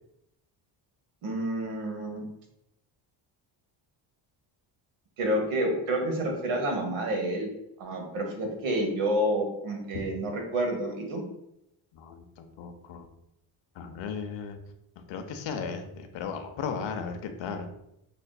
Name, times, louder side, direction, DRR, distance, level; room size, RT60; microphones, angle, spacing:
voice 1, 1.2-2.2 5.2-7.5 7.8-11.2, right 1 dB, 75° right, 2 dB, 1.1 m, -29 dB
voice 2, 11.9-13.1 13.8-14.6 15.0-17.7, left 6 dB, 65° left, 6 dB, 0.7 m, -36 dB
5.8 x 2.4 x 2.3 m, 0.82 s
cardioid pair, 100°, 49 cm